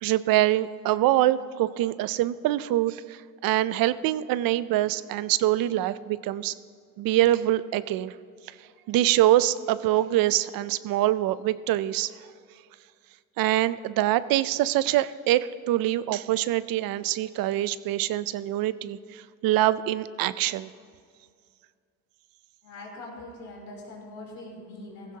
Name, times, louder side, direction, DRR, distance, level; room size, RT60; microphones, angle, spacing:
voice 1, 0.0-6.5 7.0-8.1 8.9-12.1 13.4-20.7, right 14 dB, 85° right, 16 dB, 0.5 m, -24 dB
voice 2, 22.6-25.2, left 2 dB, 90° left, -2 dB, 3.5 m, -42 dB
15.5 x 15.0 x 2.8 m, 2.2 s
cardioid pair, 90°, 34 cm